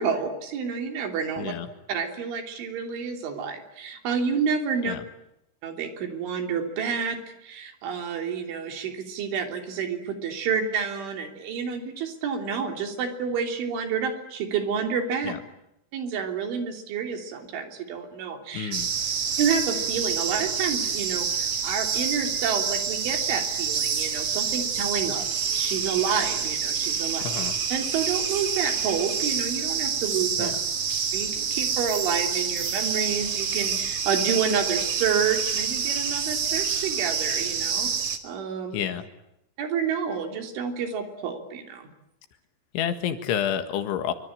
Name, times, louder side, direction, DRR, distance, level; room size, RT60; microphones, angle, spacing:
voice 1, 0.0-1.5 1.9-5.0 5.6-15.3 15.9-18.7 19.4-27.3 27.7-30.5 31.1-37.9 38.2-38.9 39.6-41.9, right 6 dB, 70° right, 5 dB, 5.5 m, -29 dB
voice 2, 1.4-1.7 4.8-5.0 15.3-15.4 18.5-18.9 27.2-27.6 30.4-30.6 38.7-39.1 42.7-44.1, left 9 dB, 70° left, 9 dB, 3.9 m, -29 dB
sound 1, 18.7-38.2, right 6 dB, 50° right, 1.7 m, -27 dB
26.5 x 25.0 x 9.0 m, 0.83 s
omnidirectional pair, 5.8 m